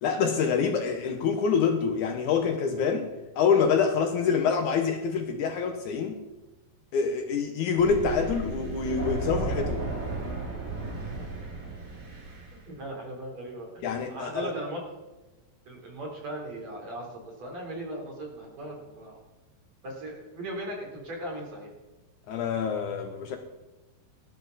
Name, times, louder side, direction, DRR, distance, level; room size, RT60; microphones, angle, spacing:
voice 1, 0.0-3.1 3.4-6.2 6.9-9.8 13.8-14.5 22.3-23.4, left 6 dB, 70° left, 6 dB, 2.2 m, -26 dB
Thunder, 7.8-12.6, right 2 dB, 85° right, 6.5 m, -34 dB
voice 2, 12.7-13.7 14.1-14.8 15.6-19.2 19.8-21.7, right 1 dB, 50° right, -1 dB, 4.9 m, -38 dB
19.0 x 13.0 x 4.1 m, 1.1 s
omnidirectional pair, 4.1 m